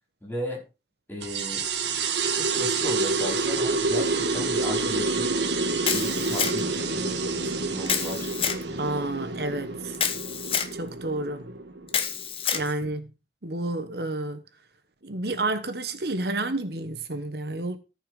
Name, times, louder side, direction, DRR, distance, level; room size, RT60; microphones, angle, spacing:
voice 1, 0.2-0.6 1.1-1.6 2.3-5.3 5.9-8.9 12.8-12.9, equal, 10° left, 4.8 m, -36 dB
Something call to you, 1.2-12.2, right 3 dB, 85° right, 1.5 m, -28 dB
Camera, 5.8-6.8 7.9-8.6 9.9-10.7 11.9-12.7, left 7 dB, 30° left, 1.1 m, -27 dB
voice 2, 8.8-10.0 10.7-11.5 12.5-13.1 13.4-14.4 15.0-17.8, right 2 dB, 65° right, 1.1 m, -30 dB
14.0 x 5.7 x 4.8 m
head